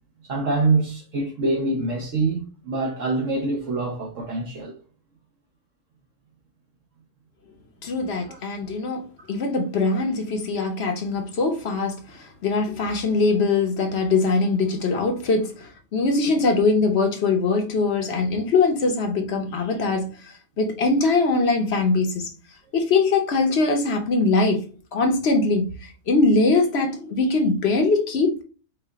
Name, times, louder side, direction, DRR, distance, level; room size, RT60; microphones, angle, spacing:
voice 1, 0.3-4.7 8.3-8.4 9.2-9.3, right 3 dB, 60° right, 1.3 m, -25 dB
voice 2, 7.8-20.1 20.6-22.3 22.7-24.6 24.9-25.7 26.1-28.4, left 3 dB, 50° left, 1.0 m, -22 dB
5.0 x 2.5 x 3.5 m
omnidirectional pair, 1.6 m